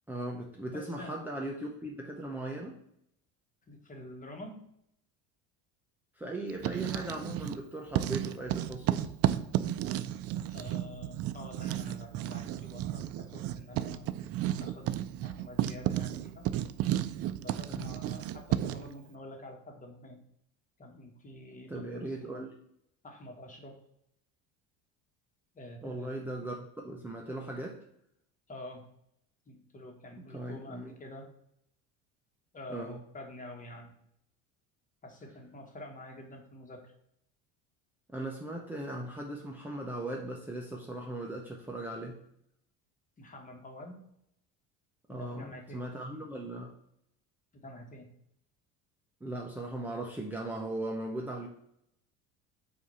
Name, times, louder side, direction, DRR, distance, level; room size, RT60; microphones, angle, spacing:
voice 1, 0.1-2.8 6.1-9.1 17.7-18.0 21.7-22.5 25.8-27.8 30.3-30.9 32.7-33.0 38.1-42.2 45.1-46.8 49.2-51.5, right 1 dB, 5° right, -1 dB, 0.7 m, -38 dB
voice 2, 0.6-1.2 3.7-4.6 10.5-14.1 14.6-14.9 15.2-16.5 17.3-20.2 20.8-22.4 23.0-23.8 25.5-26.1 28.5-28.9 29.5-31.3 32.5-33.9 35.0-36.9 43.2-44.0 45.1-45.9 47.5-48.1, left 1 dB, 25° left, 2 dB, 1.4 m, -47 dB
Writing, 6.5-7.6 7.9-18.9, right 12 dB, 45° right, 0.4 m, -33 dB
7.8 x 2.8 x 5.5 m, 0.74 s
cardioid pair, 125°, 34 cm